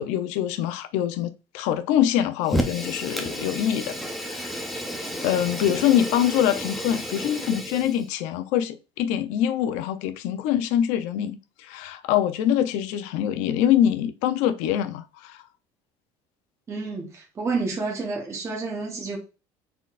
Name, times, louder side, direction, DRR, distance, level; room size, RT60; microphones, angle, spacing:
voice 1, 0.0-4.6 5.2-15.4, left 10 dB, 80° left, 0.5 m, -24 dB
Fire, 2.4-8.1, equal, ahead, 0.6 m, -31 dB
voice 2, 16.7-19.2, right 4 dB, 25° right, 1.1 m, -29 dB
4.0 x 3.9 x 2.4 m
cardioid pair, 140°, 13 cm